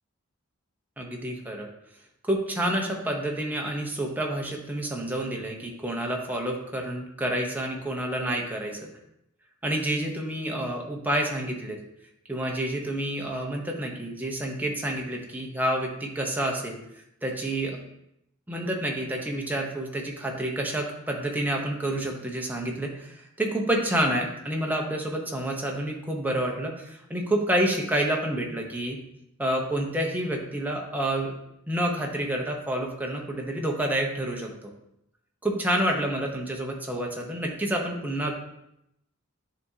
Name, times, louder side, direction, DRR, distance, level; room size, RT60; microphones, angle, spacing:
voice 1, 1.0-1.7 2.2-8.8 9.6-11.8 12.3-16.8 17.2-17.8 18.5-29.0 29.4-31.3 31.7-34.7 35.4-38.3, right 1 dB, 10° right, 0 dB, 0.8 m, -28 dB
9.8 x 3.6 x 2.7 m, 0.80 s
head